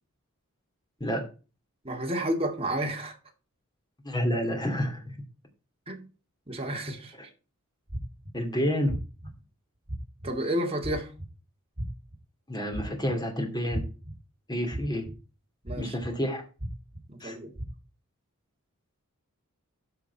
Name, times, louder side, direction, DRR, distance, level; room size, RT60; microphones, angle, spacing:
voice 1, 1.8-3.2 5.9-6.1 6.5-7.1 10.2-11.1 15.6-15.9 17.1-17.5, right 1 dB, 25° right, 2.3 m, -31 dB
voice 2, 4.0-5.2 8.3-8.9 12.5-13.8 14.5-15.0 15.8-16.4 17.2-17.4, equal, 20° left, 2.6 m, -29 dB
sound 1, 7.9-8.3 8.9-9.3 9.9-10.3 10.8-11.3 11.8-12.2 12.7-13.2 13.7-14.1 14.7-15.1 15.7-16.1 16.6-17.0 17.6-17.7, right 1 dB, 45° right, 2.7 m, -35 dB
13.5 x 4.9 x 4.6 m
head